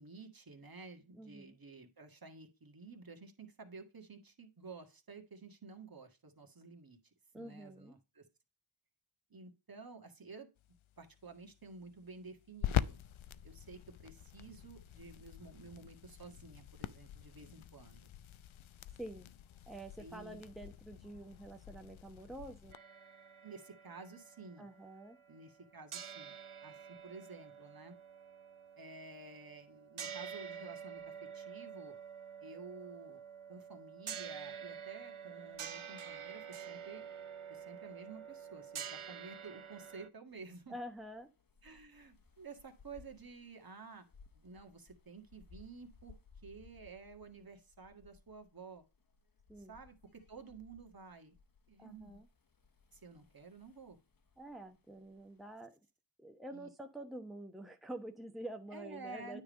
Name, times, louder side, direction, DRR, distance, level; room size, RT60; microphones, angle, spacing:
voice 1, 0.0-7.0 7.3-8.2 9.3-10.5 11.0-13.0 13.4-18.0 20.0-20.4 23.4-24.7 25.3-26.4 26.6-27.9 28.8-31.0 31.3-32.0 32.4-33.2 33.5-37.1 37.5-40.7 41.6-44.1 44.3-46.2 46.4-48.8 49.7-51.4 51.7-52.2 52.9-54.0 56.5-56.7 58.7-59.4, right 4 dB, 45° right, 5 dB, 1.8 m, -52 dB
voice 2, 1.1-1.6 7.3-7.9 19.0-19.3 19.7-22.8 24.6-25.2 40.7-41.3 49.5-49.7 51.8-52.3 54.4-55.8 56.2-59.4, right 1 dB, ahead, 5 dB, 1.0 m, -47 dB
sound 1, 10.6-22.8, left 11 dB, 75° left, 0.6 m, -44 dB
sound 2, 22.7-25.6 25.9-40.1, right 7 dB, 85° right, 1.0 m, -48 dB
sound 3, 40.3-55.7, left 5 dB, 45° left, 1.2 m, -64 dB
9.5 x 3.6 x 5.1 m, 0.28 s
cardioid pair, 55°, 48 cm